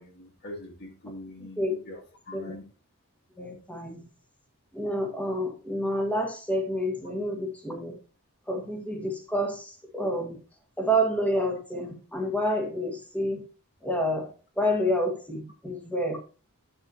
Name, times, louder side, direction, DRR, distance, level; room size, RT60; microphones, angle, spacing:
voice 1, 0.0-2.0 2.3-2.7, left 1 dB, 50° left, 1.5 m, -42 dB
voice 2, 3.4-4.1 4.7-8.0 8.5-10.4 10.8-13.4 13.8-16.2, equal, 5° left, 1.5 m, -29 dB
8.1 x 7.1 x 2.7 m
head